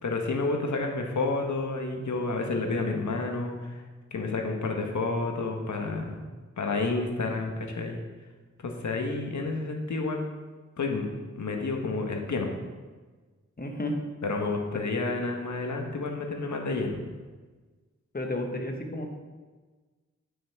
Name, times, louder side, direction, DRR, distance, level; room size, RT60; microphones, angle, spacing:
voice 1, 0.0-3.8 4.1-6.2 6.6-8.0 8.6-10.2 10.8-11.1 11.4-12.6 14.2-17.0, left 3 dB, 70° left, 3 dB, 1.2 m, -30 dB
voice 2, 13.6-14.0 14.7-14.8 18.1-19.1, left 1 dB, 30° left, 2 dB, 1.4 m, -32 dB
8.7 x 5.7 x 3.5 m, 1.3 s
cardioid pair, 50°, 30 cm